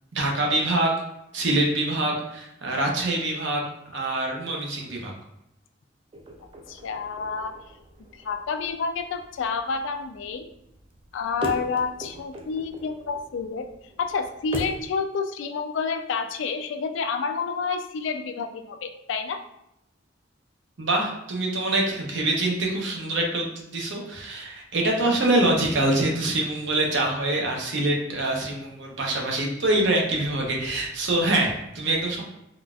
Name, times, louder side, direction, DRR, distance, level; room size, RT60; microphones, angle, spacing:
voice 1, 0.1-0.9 1.3-3.6 3.9-5.1 20.8-32.2, right 2 dB, 70° right, 0 dB, 0.7 m, -25 dB
sound 1, 6.1-14.9, right 2 dB, 30° right, 0.4 m, -40 dB
voice 2, 6.7-7.5 8.2-10.5 11.1-13.7 14.0-19.4, left 5 dB, 75° left, 7 dB, 0.3 m, -29 dB
3.7 x 2.4 x 2.3 m, 0.82 s
head